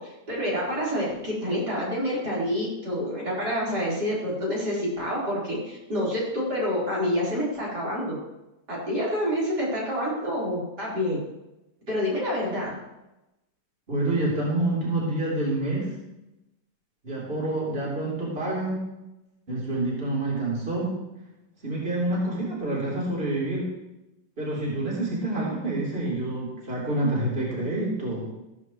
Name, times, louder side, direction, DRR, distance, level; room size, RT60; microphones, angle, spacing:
voice 1, 0.0-8.2 8.7-11.2 11.9-12.8, equal, 65° right, -6 dB, 4.7 m, -28 dB
voice 2, 13.9-15.9 17.0-18.8 19.5-20.9 21.6-23.7 24.4-28.3, right 2 dB, 30° right, -6 dB, 3.7 m, -27 dB
14.5 x 14.0 x 3.1 m, 0.95 s
omnidirectional pair, 1.9 m